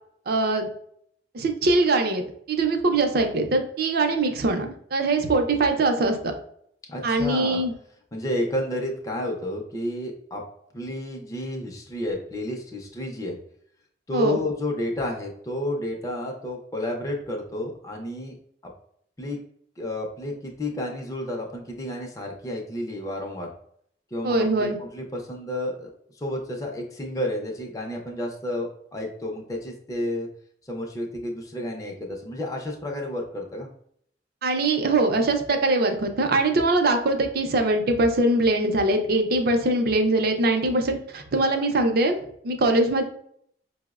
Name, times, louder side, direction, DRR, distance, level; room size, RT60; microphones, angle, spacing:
voice 1, 0.3-0.7 1.3-6.3 7.0-7.7 14.1-14.4 24.2-24.8 34.4-42.2 42.4-43.0, right 2 dB, 55° right, 5 dB, 0.5 m, -22 dB
voice 2, 6.9-7.6 8.1-10.4 10.7-13.4 14.1-18.4 19.2-19.4 19.8-23.5 24.1-30.3 30.6-33.7, left 1 dB, 20° left, 0 dB, 0.4 m, -31 dB
5.2 x 2.0 x 2.3 m, 0.68 s
head